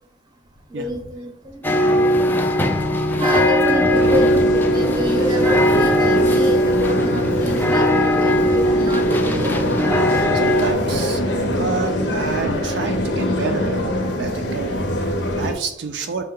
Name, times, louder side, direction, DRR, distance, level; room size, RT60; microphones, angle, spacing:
voice 1, 0.7-1.6 3.2-9.5, equal, 25° right, 3 dB, 0.7 m, -27 dB
sound 1, 1.6-10.7, equal, 10° left, 0.3 m, -19 dB
sound 2, 3.9-15.5, equal, 80° left, 0.7 m, -23 dB
voice 2, 10.1-13.8 14.2-16.3, right 4 dB, 70° right, 6 dB, 0.4 m, -29 dB
5.3 x 2.1 x 3.7 m, 0.78 s
head